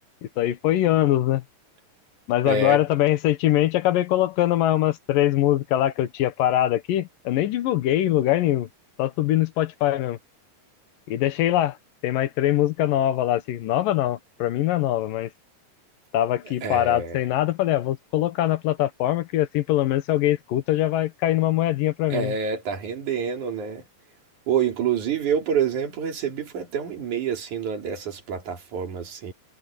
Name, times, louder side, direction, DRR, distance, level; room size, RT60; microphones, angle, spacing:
voice 1, 0.4-1.4 2.3-8.7 9.0-10.2 11.1-11.8 12.0-15.3 16.1-22.3, left 13 dB, 80° left, 2.8 m, -22 dB
voice 2, 2.4-2.8 16.4-17.2 22.1-23.9 24.5-29.3, right 7 dB, 60° right, 4.5 m, -27 dB
omnidirectional pair, 3.9 m